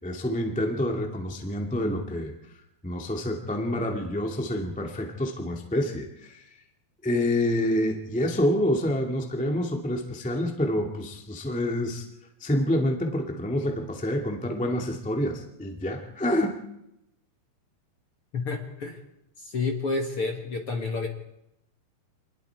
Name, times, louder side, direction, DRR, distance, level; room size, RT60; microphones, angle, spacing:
voice 1, 0.0-2.3 2.8-6.4 7.0-12.0 12.4-16.6, left 1 dB, 5° left, 2 dB, 0.8 m, -27 dB
voice 2, 18.3-19.0 19.4-21.1, left 3 dB, 50° left, 3 dB, 1.9 m, -29 dB
27.0 x 20.5 x 4.7 m, 0.82 s
omnidirectional pair, 4.7 m